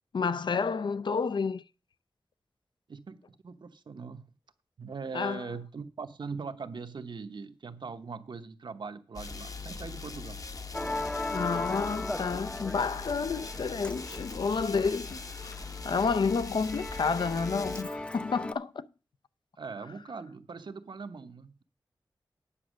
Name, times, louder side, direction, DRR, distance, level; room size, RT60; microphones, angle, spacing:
voice 1, 0.1-1.6 5.1-5.4 11.3-15.6 15.8-18.9, left 5 dB, 65° left, 0.5 m, -30 dB
voice 2, 2.9-4.3 4.8-10.4 19.6-21.6, right 5 dB, 65° right, 0.9 m, -41 dB
sound 1, 9.2-17.8, left 4 dB, 45° left, 0.9 m, -41 dB
Musical instrument, 10.7-18.5, left 2 dB, 15° left, 0.6 m, -38 dB
9.8 x 6.1 x 6.3 m
wide cardioid pair, 70°, 8 cm